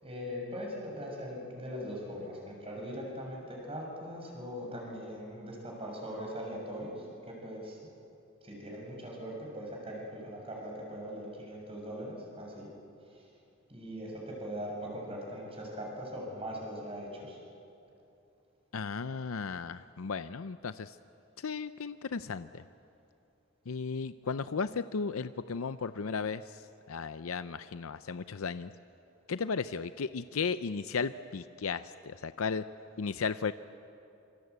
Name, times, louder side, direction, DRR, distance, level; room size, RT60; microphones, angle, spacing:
voice 1, 0.0-7.8 8.4-12.7 13.1-13.3 13.7-17.4, equal, 30° right, -1 dB, 6.5 m, -41 dB
voice 2, 18.7-21.0 21.4-22.7 23.7-28.7 29.3-32.6 33.0-33.5, left 5 dB, 85° left, 12 dB, 0.6 m, -35 dB
26.5 x 25.0 x 8.2 m, 2.7 s
head